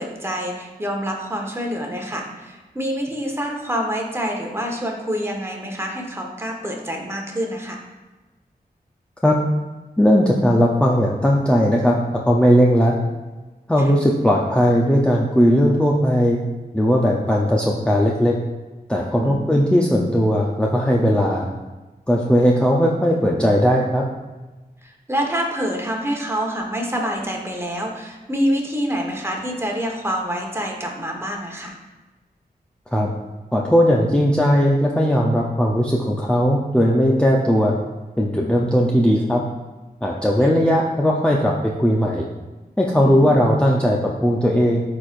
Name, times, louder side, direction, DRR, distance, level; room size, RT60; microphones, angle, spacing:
voice 1, 0.0-7.8 13.8-13.9 19.2-19.8 24.8-31.7 40.4-40.5 43.0-43.5, equal, 15° right, 0 dB, 1.3 m, -27 dB
voice 2, 10.0-12.0 12.3-13.0 13.7-16.4 16.7-18.4 18.9-21.5 22.1-24.0 32.9-33.1 33.5-37.7 38.2-39.4 40.0-42.3 42.8-44.8, equal, 5° left, -3 dB, 0.6 m, -18 dB
13.0 x 4.4 x 2.6 m, 1.2 s
wide cardioid pair, 90°, 16 cm